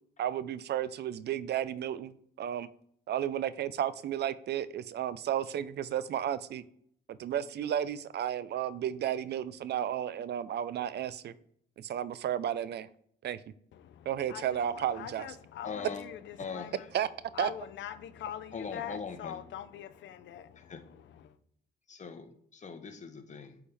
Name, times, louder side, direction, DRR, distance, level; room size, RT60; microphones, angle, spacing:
voice 1, 0.2-2.7 3.1-6.6 7.2-11.3 11.8-12.9 13.2-13.4 14.1-15.3 16.9-17.1 17.4-17.5, right 10 dB, 60° right, 0.4 m, -33 dB
voice 2, 13.7-16.8 17.3-21.4, left 10 dB, 70° left, 0.5 m, -43 dB
voice 3, 15.6-16.1 16.4-16.9 18.5-19.4 20.5-20.8 21.9-23.6, left 5 dB, 35° left, 1.0 m, -41 dB
8.5 x 3.6 x 3.4 m
cardioid pair, 90°, 20 cm